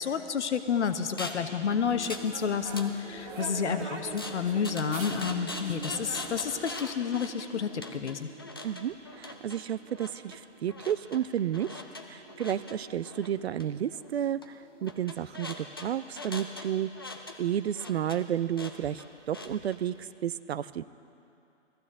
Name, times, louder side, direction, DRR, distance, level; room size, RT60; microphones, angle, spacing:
voice 1, 0.0-8.3, left 6 dB, 70° left, 9 dB, 1.1 m, -30 dB
sound 1, 1.2-1.5 2.0-2.3 2.6-3.4 4.2-19.8, left 2 dB, 20° left, 0.4 m, -42 dB
sound 2, 1.5-15.8, right 4 dB, 40° right, 1.6 m, -49 dB
fez streetcorner people, 1.7-6.8, right 3 dB, 90° right, 2.2 m, -44 dB
voice 2, 8.6-11.8 12.1-16.9 17.4-20.8, right 10 dB, 60° right, 16 dB, 0.5 m, -32 dB
20.5 x 14.5 x 3.6 m, 2.7 s
hypercardioid pair, 150°, 37 cm